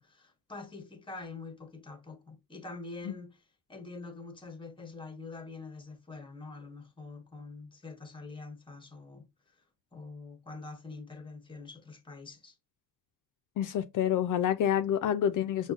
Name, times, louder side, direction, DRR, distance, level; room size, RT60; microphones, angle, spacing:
voice 1, 0.0-3.4 3.7-9.3 9.9-12.6, left 3 dB, 15° left, 0.9 m, -45 dB
voice 2, 13.6-15.7, left 10 dB, 65° left, 0.4 m, -28 dB
5.9 x 2.3 x 2.3 m
cardioid pair, 130°, 34 cm